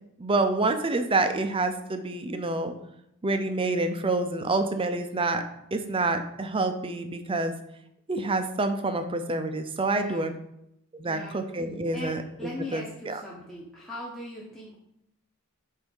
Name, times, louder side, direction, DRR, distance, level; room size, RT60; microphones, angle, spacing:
voice 1, 0.2-2.7 3.2-5.4 5.7-7.5 8.1-10.3 10.9-12.2 12.7-13.2, right 2 dB, 25° right, 8 dB, 0.5 m, -27 dB
voice 2, 9.9-10.3 11.0-11.4 11.9-14.8, left 1 dB, ahead, -6 dB, 0.9 m, -40 dB
8.0 x 2.7 x 5.2 m, 0.79 s
head